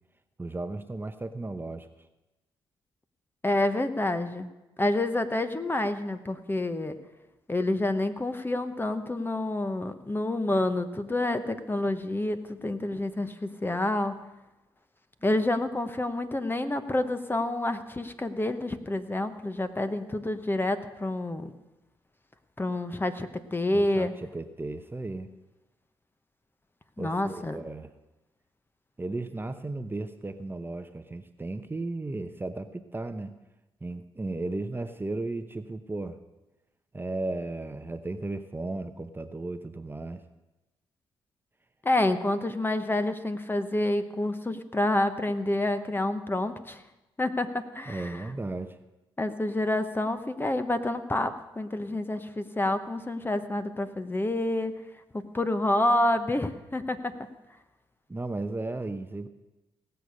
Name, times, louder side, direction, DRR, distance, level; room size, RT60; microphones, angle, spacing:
voice 1, 0.4-1.9 23.7-25.3 27.0-27.9 29.0-33.4 33.8-36.2 36.9-40.2 47.9-48.8 58.1-59.3, right 2 dB, 20° right, 9 dB, 0.9 m, -35 dB
voice 2, 3.4-4.5 4.8-7.0 7.5-14.2 15.2-21.5 22.6-24.1 27.0-27.6 41.8-46.8 47.2-48.1 49.2-54.7 55.1-57.2, left 1 dB, 20° left, 9 dB, 1.1 m, -28 dB
18.0 x 6.8 x 6.5 m, 1.0 s
supercardioid pair, 50°, 11 cm